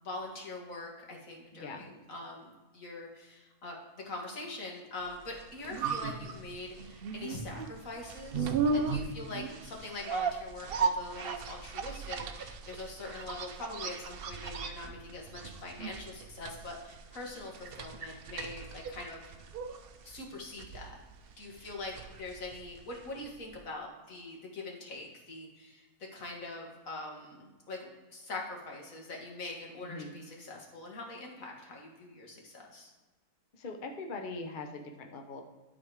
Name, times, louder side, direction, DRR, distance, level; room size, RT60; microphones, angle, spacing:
voice 1, 0.0-3.8 4.1-19.5 20.0-21.0 21.4-25.8 26.1-32.9, left 2 dB, 60° left, 0 dB, 2.0 m, -43 dB
voice 2, 1.5-1.8 21.5-21.7 29.9-30.1 33.5-35.4, left 3 dB, 45° left, 3 dB, 0.7 m, -41 dB
sound 1, 5.2-23.3 23.5-23.6, right 5 dB, 55° right, 0.6 m, -36 dB
11.5 x 4.1 x 4.8 m, 1.2 s
omnidirectional pair, 1.6 m